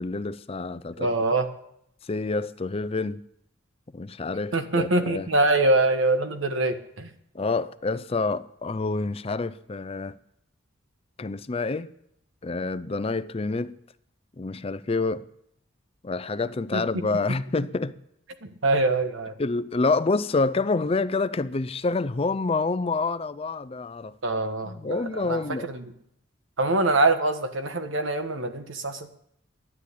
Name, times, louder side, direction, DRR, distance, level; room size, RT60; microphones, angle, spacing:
voice 1, 0.0-1.1 2.0-3.2 3.9-5.3 7.3-10.1 11.2-11.9 12.4-13.8 14.4-15.2 16.0-17.9 19.4-24.1 24.6-25.7, left 3 dB, 30° left, 0.5 m, -27 dB
voice 2, 1.0-1.5 4.5-7.1 16.7-16.8 18.4-19.3 24.2-25.8 26.6-29.1, right 2 dB, 75° right, 1.4 m, -24 dB
12.5 x 9.9 x 8.4 m
head